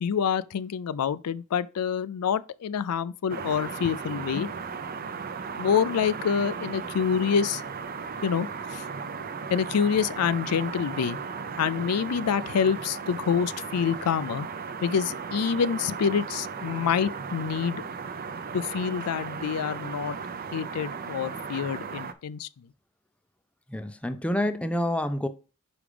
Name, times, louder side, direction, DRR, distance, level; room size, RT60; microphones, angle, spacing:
voice 1, 0.0-4.5 5.6-7.6 8.2-8.9 9.5-11.2 11.6-14.5 14.8-17.8 18.5-20.2 20.5-22.5, left 7 dB, 80° left, 0.4 m, -27 dB
sound 1, 3.3-22.1, right 5 dB, 40° right, 0.6 m, -36 dB
voice 2, 23.7-25.3, left 1 dB, 5° left, 0.4 m, -28 dB
5.1 x 4.9 x 4.9 m
head